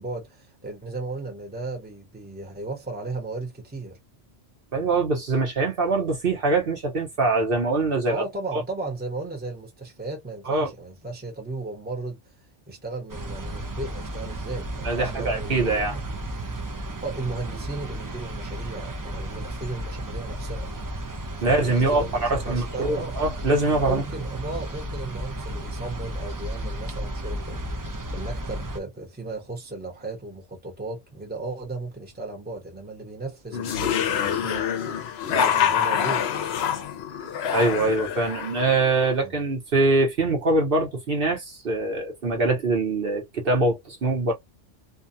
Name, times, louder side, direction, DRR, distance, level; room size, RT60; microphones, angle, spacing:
voice 1, 0.0-4.0 8.1-12.3 12.7-16.0 16.9-20.7 21.4-23.1 23.8-34.7 35.3-36.2 39.2-39.3, right 3 dB, 10° right, 0.9 m, -35 dB
voice 2, 4.7-8.2 8.5-8.6 10.5-10.7 14.8-15.9 21.4-24.0 37.5-44.3, right 2 dB, 50° right, 1.1 m, -23 dB
sound 1, 13.1-28.8, right 1 dB, 35° right, 0.3 m, -33 dB
sound 2, 33.5-39.1, left 8 dB, 65° left, 0.8 m, -26 dB
2.6 x 2.3 x 2.6 m
omnidirectional pair, 1.2 m